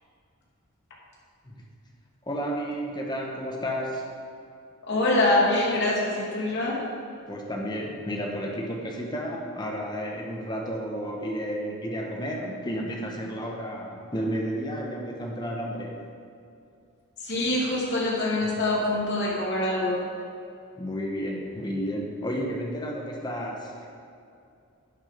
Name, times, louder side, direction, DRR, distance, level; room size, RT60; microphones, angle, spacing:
voice 1, 2.2-4.1 7.3-16.1 20.7-23.9, equal, 20° left, 0 dB, 1.3 m, -32 dB
voice 2, 4.9-6.8 17.2-20.0, left 2 dB, 50° left, -5 dB, 2.8 m, -24 dB
10.5 x 8.5 x 5.3 m, 2.6 s
head